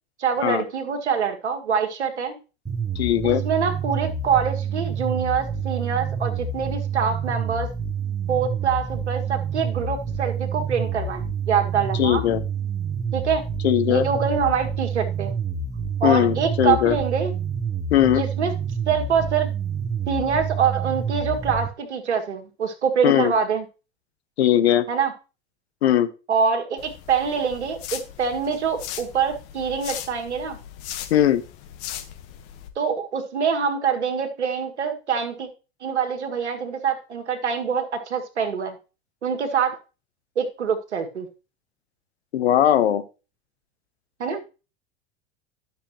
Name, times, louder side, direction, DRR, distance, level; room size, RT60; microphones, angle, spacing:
voice 1, 0.2-2.4 3.2-7.7 8.3-12.2 13.1-13.4 13.9-15.3 16.0-17.3 18.1-18.5 18.9-19.5 20.1-23.6 24.9-25.1 26.3-30.6 32.8-35.5 35.8-38.7 39.2-39.8 40.4-41.3 44.2-44.4, right 6 dB, 70° right, 5 dB, 1.7 m, -25 dB
sound 1, 2.7-21.7, right 6 dB, 10° right, 1.4 m, -28 dB
voice 2, 3.0-3.4 12.0-12.4 13.6-14.1 16.0-17.0 17.9-18.2 23.0-23.3 24.4-24.8 25.8-26.1 31.1-31.4 42.3-43.0, left 11 dB, 65° left, 11 dB, 1.1 m, -19 dB
sound 2, 26.8-32.7, left 10 dB, 50° left, 1.4 m, -38 dB
12.0 x 6.8 x 3.1 m, 0.32 s
figure-of-eight pair, 80°, 35 cm